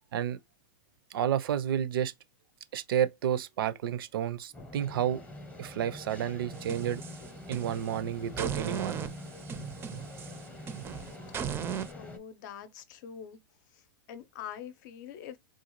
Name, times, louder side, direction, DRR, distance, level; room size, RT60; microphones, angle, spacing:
voice 1, 1.1-2.1 2.7-5.2 5.6-7.0 7.5-9.1, right 10 dB, 75° right, 0.5 m, -31 dB
sound 1, 4.5-12.2, left 1 dB, 10° left, 0.7 m, -45 dB
sound 2, 6.5-8.0 8.4-11.9, right 8 dB, 20° right, 0.4 m, -37 dB
voice 2, 11.9-13.4 14.1-15.4, left 9 dB, 55° left, 0.6 m, -44 dB
3.8 x 2.3 x 3.0 m
hypercardioid pair, 130°, 12 cm